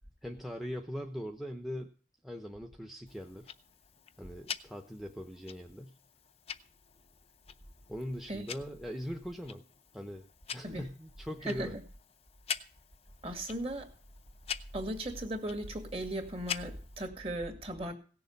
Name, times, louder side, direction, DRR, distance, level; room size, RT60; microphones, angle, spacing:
voice 1, 0.2-1.9 2.2-3.5 4.2-6.0 7.9-9.6 9.9-10.2 10.5-11.8, equal, ahead, 0.9 m, -41 dB
Tick-tock, 3.1-17.1, left 8 dB, 30° left, 0.6 m, -46 dB
voice 2, 11.4-11.8 13.2-13.9 14.7-17.9, right 1 dB, 30° right, 2.1 m, -37 dB
17.0 x 7.0 x 5.3 m
head